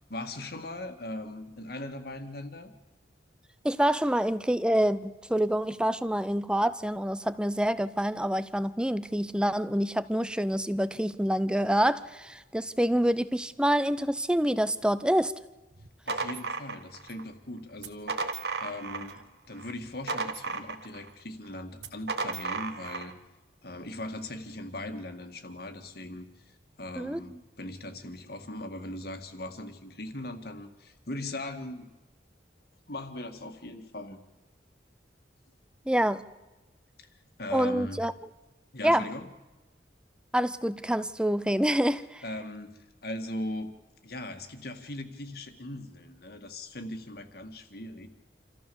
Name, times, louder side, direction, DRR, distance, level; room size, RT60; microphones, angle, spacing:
voice 1, 0.1-2.7 16.1-18.2 18.6-19.2 19.5-23.1 23.6-26.5 26.8-31.9 32.9-34.2 37.0-38.0 38.7-39.3 42.2-43.7 44.0-48.1, left 1 dB, 60° left, 7 dB, 2.0 m, -39 dB
voice 2, 3.6-15.3 27.0-27.2 35.9-36.2 37.5-38.1 38.8-39.1 40.3-42.2, equal, 5° right, 14 dB, 0.6 m, -26 dB
sound 1, 15.8-17.2 17.8-19.2 19.6-21.1 21.8-23.1, right 4 dB, 65° right, 1.5 m, -34 dB
27.5 x 14.5 x 7.1 m, 1.1 s
head